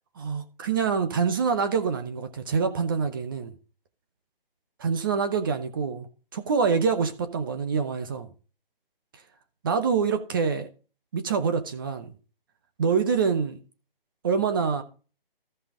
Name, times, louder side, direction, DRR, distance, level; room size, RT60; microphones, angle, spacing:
voice 1, 0.2-3.5 4.8-6.1 6.3-8.3 9.6-10.7 11.1-12.1 12.8-13.6 14.2-14.8, right 5 dB, 25° right, 0.9 m, -25 dB
14.5 x 5.5 x 3.7 m
figure-of-eight pair, 160°, 29 cm